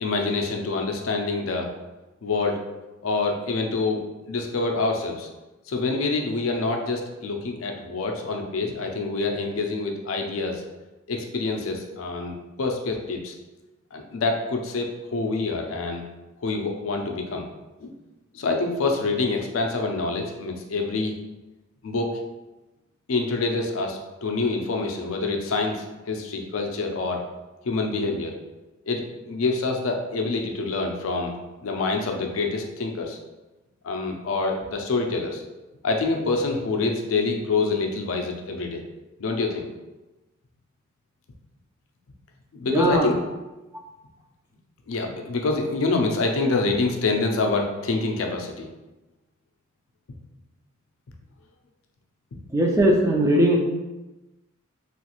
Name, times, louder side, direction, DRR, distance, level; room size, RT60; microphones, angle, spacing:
voice 1, 0.0-1.7 2.2-2.6 3.0-4.0 4.3-5.3 5.7-10.6 11.1-13.3 13.9-16.0 16.4-17.5 17.8-17.9 18.3-21.1 21.8-22.2 23.1-27.2 27.6-28.3 28.9-31.3 31.6-33.2 33.8-35.4 35.8-38.8 39.2-39.7 42.5-43.2 44.9-48.7, left 3 dB, 70° left, 3 dB, 0.4 m, -26 dB
voice 2, 42.7-43.1 52.5-53.6, right 1 dB, 15° right, 0 dB, 0.4 m, -19 dB
3.1 x 2.4 x 2.9 m, 1.1 s
head